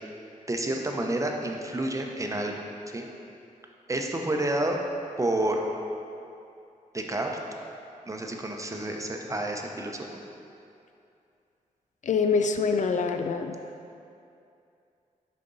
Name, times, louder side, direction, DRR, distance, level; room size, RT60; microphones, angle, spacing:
voice 1, 0.5-2.5 2.9-3.1 3.9-4.8 5.2-5.6 6.9-7.3 8.1-10.1, right 1 dB, 20° right, 2 dB, 0.8 m, -29 dB
voice 2, 12.0-13.6, left 5 dB, 60° left, 6 dB, 0.4 m, -25 dB
6.6 x 5.2 x 4.0 m, 2.6 s
cardioid pair, 65°, 14 cm